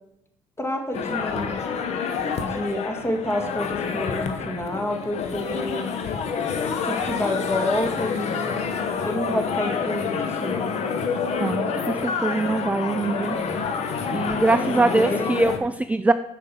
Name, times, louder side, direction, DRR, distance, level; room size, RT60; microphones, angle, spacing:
voice 1, 0.6-1.6 2.4-5.9 6.8-8.6 9.0-10.7 14.7-15.3, left 1 dB, 20° left, 4 dB, 2.0 m, -28 dB
sound 1, 0.9-15.6, left 5 dB, 55° left, 1.1 m, -28 dB
voice 2, 11.4-13.4 14.1-16.1, right 2 dB, 10° right, 11 dB, 0.4 m, -23 dB
6.7 x 5.9 x 6.8 m, 0.83 s
hypercardioid pair, 65°, 13 cm